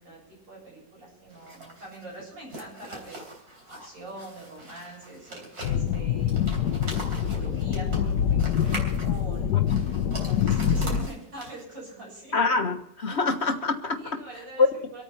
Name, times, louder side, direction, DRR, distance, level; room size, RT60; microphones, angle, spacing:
voice 1, 0.0-6.6 7.1-9.7 10.2-12.4 14.0-15.0, right 1 dB, 85° right, -3 dB, 7.9 m, -44 dB
sound 1, 1.3-11.8, right 1 dB, 55° right, 4.0 m, -42 dB
sound 2, 5.6-11.1, left 9 dB, 70° left, 1.3 m, -25 dB
voice 2, 12.3-14.2 14.6-14.7, left 4 dB, 40° left, 5 dB, 1.5 m, -24 dB
27.0 x 9.1 x 4.3 m, 0.76 s
omnidirectional pair, 1.9 m